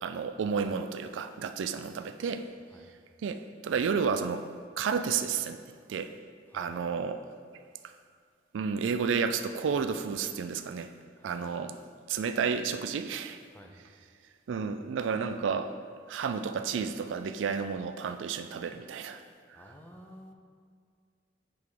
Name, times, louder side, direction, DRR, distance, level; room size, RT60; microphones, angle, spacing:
voice 1, 0.0-2.5 3.2-4.4 4.8-5.6 5.9-6.1 6.5-7.2 8.5-10.9 11.2-11.7 12.1-13.4 14.5-15.7 16.1-19.2 19.5-19.6, right 6 dB, 90° right, 9 dB, 0.3 m, -31 dB
voice 2, 11.2-11.5 13.5-13.8 19.5-20.3, equal, 10° left, 1 dB, 0.6 m, -51 dB
7.8 x 3.6 x 4.8 m, 2.1 s
head